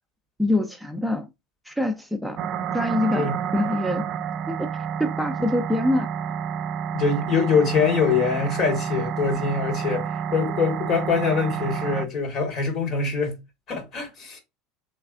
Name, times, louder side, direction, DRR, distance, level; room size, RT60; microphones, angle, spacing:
voice 1, 0.4-1.3 1.7-2.4 2.7-4.0 4.5-4.7 5.0-6.1, left 1 dB, ahead, 0.5 m, -25 dB
sound 1, 2.4-12.1, right 7 dB, 50° right, 0.4 m, -29 dB
voice 2, 6.9-13.4 13.7-14.4, left 5 dB, 50° left, 1.7 m, -24 dB
3.2 x 3.1 x 2.5 m
hypercardioid pair, 80°, 0 cm